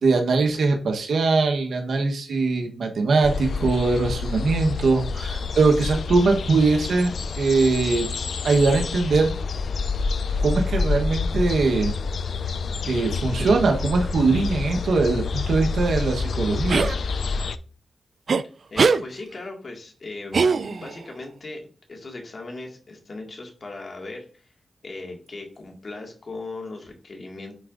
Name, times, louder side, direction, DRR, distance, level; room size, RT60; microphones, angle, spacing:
voice 1, 0.0-8.1 8.4-9.3 10.4-11.9 12.9-16.9, right 3 dB, 80° right, 3 dB, 1.2 m, -21 dB
sound 1, 3.2-17.6, left 4 dB, 70° left, 0.4 m, -28 dB
sound 2, 16.7-16.9 18.3-18.4 18.8-19.0 20.3-21.0, right 5 dB, 65° right, 0.4 m, -20 dB
voice 2, 18.7-21.6 21.9-24.5 24.8-27.6, left 2 dB, 50° left, 1 dB, 2.0 m, -38 dB
9.8 x 4.6 x 2.6 m, 0.40 s
cardioid pair, 65°, 0 cm